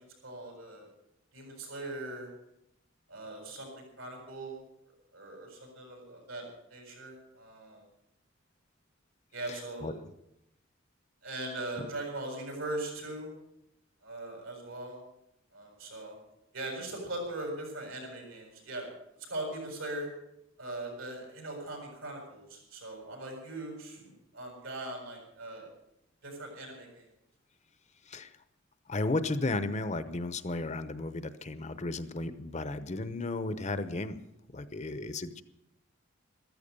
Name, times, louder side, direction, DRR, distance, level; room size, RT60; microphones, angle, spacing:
voice 1, 0.2-0.9 1.3-2.3 3.1-4.6 5.1-6.4 6.7-7.8 9.3-9.9 11.2-13.3 14.0-15.0 15.5-16.1 16.5-18.9 19.3-20.1 20.6-24.0 24.3-25.7 26.2-27.0, right 1 dB, 85° right, 1 dB, 7.5 m, -40 dB
voice 2, 9.5-9.9 28.1-28.3 28.9-34.2 34.5-35.4, left 2 dB, 35° left, 12 dB, 0.8 m, -34 dB
14.0 x 14.0 x 6.8 m, 0.81 s
head